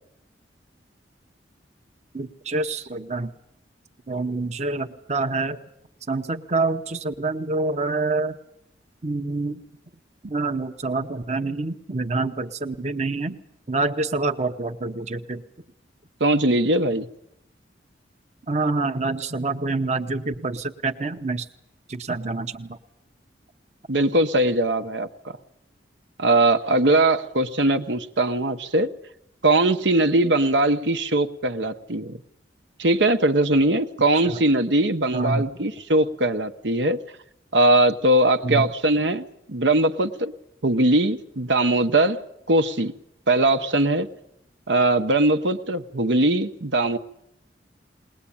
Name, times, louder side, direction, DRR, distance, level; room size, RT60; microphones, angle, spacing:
voice 1, 2.1-3.3 4.1-5.6 6.1-8.4 9.0-9.6 10.2-13.4 13.7-15.4 18.5-21.5 21.9-22.8 34.2-34.4 35.1-35.4 38.4-38.7, right 3 dB, 40° right, 6 dB, 0.9 m, -26 dB
voice 2, 16.2-17.1 23.9-25.4 26.2-28.9 29.4-32.2 32.8-37.0 37.5-40.3 40.6-42.2 42.5-42.9 43.3-44.1 44.7-47.0, right 2 dB, 80° right, 7 dB, 1.1 m, -20 dB
21.0 x 20.0 x 8.7 m, 0.77 s
head